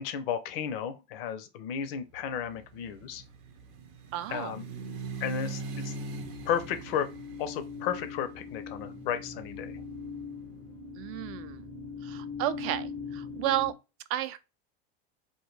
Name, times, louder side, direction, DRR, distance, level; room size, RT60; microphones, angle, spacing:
voice 1, 0.0-3.2 4.3-4.6 5.2-5.9 6.5-7.1 7.4-9.7, left 8 dB, 75° left, 0.6 m, -33 dB
sound 1, 2.3-10.3, right 4 dB, 85° right, 0.7 m, -42 dB
sound 2, 3.8-4.6 4.9-13.7, left 5 dB, 15° left, 0.4 m, -42 dB
voice 2, 4.1-4.5 11.0-11.6 12.0-13.7 14.1-14.4, right 13 dB, 50° right, 0.4 m, -32 dB
2.2 x 2.2 x 3.1 m
supercardioid pair, 115°, 29 cm